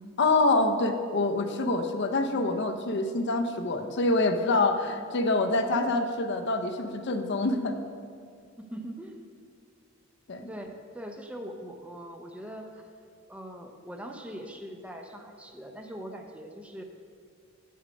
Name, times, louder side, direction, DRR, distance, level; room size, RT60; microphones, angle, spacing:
voice 1, 0.2-7.8 10.3-10.4, left 2 dB, 60° left, 6 dB, 0.6 m, -26 dB
voice 2, 8.6-9.2 10.4-12.9 13.3-16.8, equal, 5° right, 3 dB, 0.5 m, -41 dB
7.9 x 6.5 x 5.1 m, 2.2 s
head